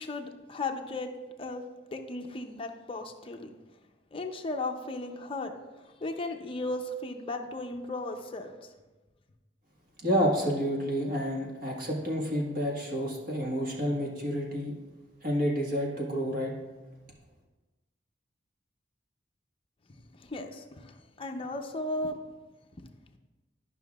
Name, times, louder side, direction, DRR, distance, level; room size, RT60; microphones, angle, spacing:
voice 1, 0.0-1.6 1.9-3.5 4.1-8.7 20.1-22.2 22.8-22.9, left 2 dB, 30° left, 4 dB, 0.6 m, -36 dB
voice 2, 10.0-14.7 15.2-16.5, equal, 50° right, -2 dB, 1.4 m, -29 dB
11.5 x 5.5 x 2.3 m, 1.2 s
head